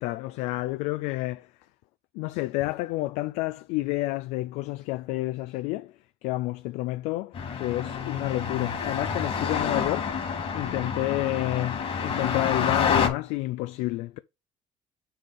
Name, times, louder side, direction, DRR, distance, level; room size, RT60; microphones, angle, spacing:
voice 1, 0.0-1.5 2.1-10.1 10.5-14.2, left 18 dB, 85° left, 0.4 m, -30 dB
sound 1, 7.3-13.1, left 6 dB, 55° left, 2.7 m, -28 dB
5.6 x 5.2 x 6.3 m
supercardioid pair, 80°, 11 cm